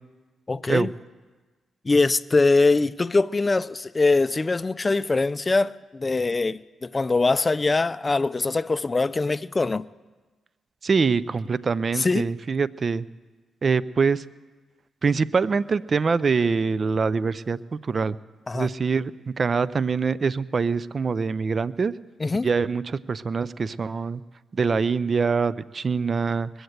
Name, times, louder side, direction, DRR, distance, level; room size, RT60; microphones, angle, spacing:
voice 1, 0.5-0.9 1.8-9.8 12.0-12.3 18.5-18.7 22.2-22.5, left 3 dB, 30° left, 0.4 m, -22 dB
voice 2, 10.8-13.1 13.6-14.2 15.0-18.2 18.5-21.9 22.4-24.2 24.5-26.5, right 5 dB, 45° right, 0.4 m, -24 dB
20.5 x 7.9 x 8.0 m
supercardioid pair, 60°, 0 cm